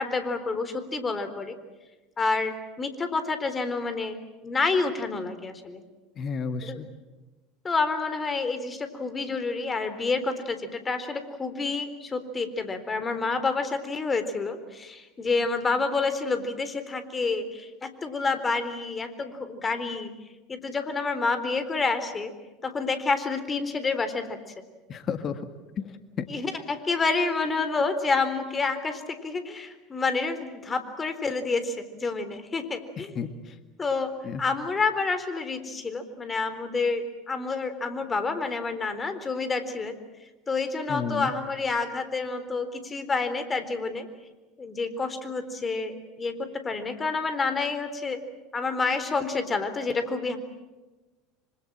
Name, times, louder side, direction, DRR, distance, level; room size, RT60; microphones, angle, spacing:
voice 1, 0.0-1.6 2.2-4.2 4.4-5.8 6.6-6.8 7.6-20.1 20.5-22.3 22.6-24.4 26.3-33.1 33.8-34.1 34.4-39.9 40.5-44.1 44.6-48.2 48.5-50.4, left 4 dB, 25° left, 10 dB, 3.8 m, -28 dB
voice 2, 6.2-6.9 24.9-25.5 25.8-26.3 33.0-33.6 34.2-34.4 40.9-41.3, left 6 dB, 40° left, 10 dB, 1.9 m, -32 dB
26.0 x 26.0 x 7.6 m, 1.2 s
hypercardioid pair, 75°, 0 cm